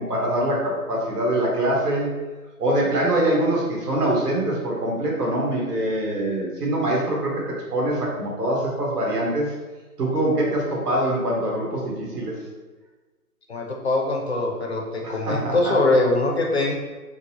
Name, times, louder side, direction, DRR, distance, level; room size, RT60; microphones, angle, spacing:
voice 1, 0.0-2.1 2.6-7.3 7.7-9.5 10.0-12.4 15.0-15.7, right 1 dB, 80° right, -3 dB, 1.3 m, -24 dB
voice 2, 13.5-16.7, left 2 dB, 45° left, 0 dB, 0.4 m, -22 dB
3.9 x 2.1 x 2.8 m, 1.3 s
hypercardioid pair, 165°, 47 cm